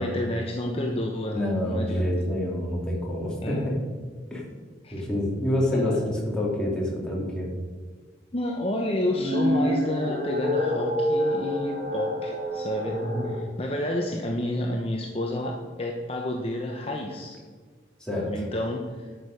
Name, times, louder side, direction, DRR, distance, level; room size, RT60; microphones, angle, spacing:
voice 1, 0.0-2.1 3.4-3.7 4.8-5.0 5.7-6.1 8.3-17.4 18.2-19.1, left 1 dB, 35° left, 1 dB, 0.9 m, -30 dB
voice 2, 1.3-3.7 4.3-4.4 4.9-7.5 12.9-13.3 18.0-18.2, left 1 dB, 5° left, -4 dB, 2.6 m, -27 dB
sound 1, 9.0-13.4, equal, 50° right, 1.6 m, -27 dB
11.5 x 6.6 x 5.3 m, 1.5 s
head